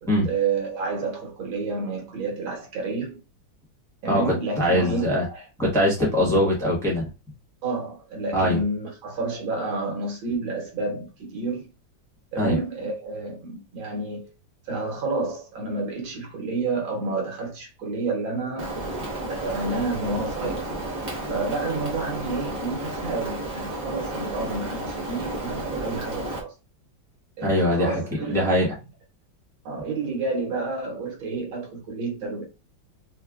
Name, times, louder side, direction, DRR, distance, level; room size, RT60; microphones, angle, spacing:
voice 1, 0.0-3.2 4.0-5.5 7.6-11.7 12.3-14.3 14.7-20.7 21.3-26.5 27.4-28.7 29.7-32.4, right 3 dB, 90° right, 2.0 m, -30 dB
voice 2, 4.1-5.2 5.6-7.1 8.3-8.6 12.4-12.6 27.4-28.0 28.3-28.7, equal, ahead, 0.9 m, -22 dB
Rain, 18.6-26.4, right 2 dB, 45° right, 0.5 m, -32 dB
4.3 x 2.2 x 2.3 m
omnidirectional pair, 2.1 m